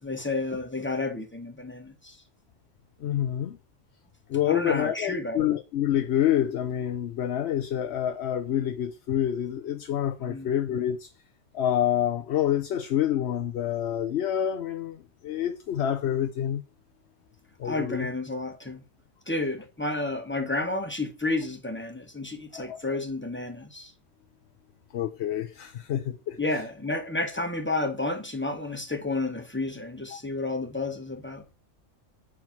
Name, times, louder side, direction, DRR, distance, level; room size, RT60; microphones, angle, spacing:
voice 1, 0.0-2.2 4.4-5.5 10.3-10.5 17.6-18.8 19.3-23.9 26.4-31.4, left 2 dB, 10° left, 1.1 m, -31 dB
voice 2, 3.0-3.6 4.3-11.1 11.5-16.6 17.6-18.1 22.5-22.8 24.9-26.4 30.1-30.2, left 10 dB, 65° left, 0.9 m, -27 dB
7.3 x 4.6 x 5.9 m
omnidirectional pair, 1.3 m